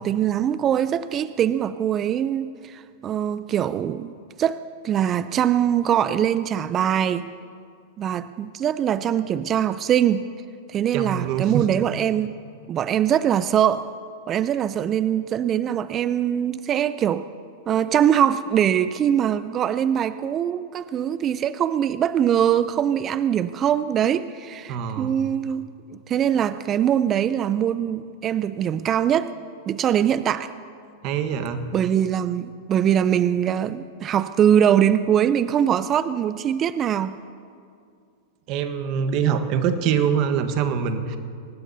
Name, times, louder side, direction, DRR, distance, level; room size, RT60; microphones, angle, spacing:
voice 1, 0.0-4.1 4.4-7.3 8.0-10.3 10.7-12.4 12.7-13.9 14.3-17.3 17.7-25.7 26.1-29.3 29.7-30.5 31.7-37.2, right 9 dB, 30° right, 14 dB, 0.5 m, -22 dB
voice 2, 10.9-11.7 24.7-25.1 31.0-31.7 38.5-41.2, right 7 dB, 50° right, 8 dB, 1.3 m, -24 dB
23.5 x 19.0 x 2.8 m, 2.3 s
hypercardioid pair, 110°, 0 cm